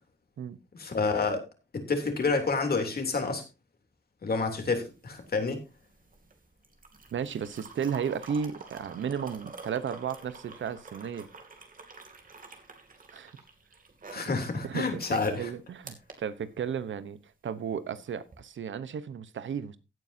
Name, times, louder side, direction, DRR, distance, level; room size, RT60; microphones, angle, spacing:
voice 1, 0.7-1.4 1.7-3.4 4.2-5.6 14.1-15.5, left 4 dB, 55° left, 3.1 m, -29 dB
sound 1, 4.7-17.0 18.2-18.4, right 4 dB, 45° right, 2.7 m, -48 dB
voice 2, 7.1-11.3 13.1-13.3 14.2-14.3 14.6-19.8, right 7 dB, 80° right, 1.0 m, -34 dB
16.0 x 9.3 x 2.8 m
wide cardioid pair, 110°, 19 cm